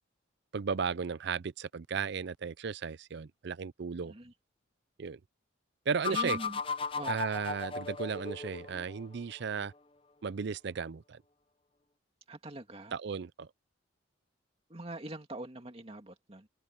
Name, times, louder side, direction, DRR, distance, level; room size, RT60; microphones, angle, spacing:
voice 1, 0.5-4.1 5.0-5.2 5.9-6.4 7.1-9.7 10.2-11.2 12.9-13.5, right 6 dB, 55° right, 0.5 m, -35 dB
voice 2, 4.0-4.3 6.1-6.6 7.0-7.2 12.3-13.0 14.7-16.5, right 1 dB, 30° right, 2.3 m, -43 dB
sound 1, 6.0-8.9, left 5 dB, 25° left, 0.6 m, -36 dB
head